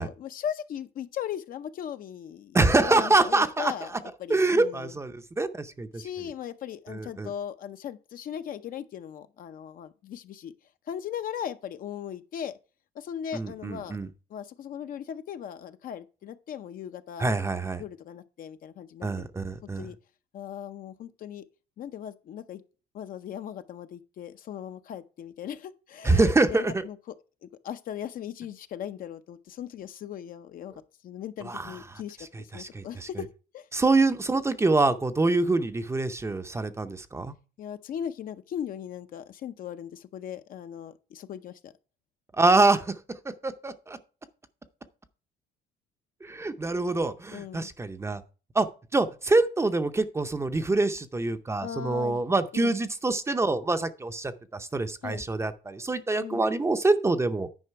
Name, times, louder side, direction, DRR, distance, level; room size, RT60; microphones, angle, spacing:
voice 1, 0.0-3.9 4.2-5.0 5.9-10.5 10.9-12.6 12.9-14.0 14.3-17.3 17.8-20.0 20.3-21.4 21.8-22.6 22.9-27.1 27.4-33.3 33.5-33.7 37.6-41.7 47.3-47.7 51.6-52.2 52.5-52.8 55.0-55.2 56.2-56.4, left 9 dB, 55° left, 0.7 m, -38 dB
voice 2, 2.5-3.7 4.3-5.9 7.2-7.3 13.3-14.1 17.2-17.8 19.0-19.9 26.0-26.7 31.5-31.7 32.5-32.8 33.7-37.3 42.4-43.0 43.3-44.0 46.2-48.2 48.5-48.7 48.9-57.5, right 3 dB, 15° right, 0.6 m, -25 dB
9.8 x 5.0 x 4.6 m
cardioid pair, 110°, 17 cm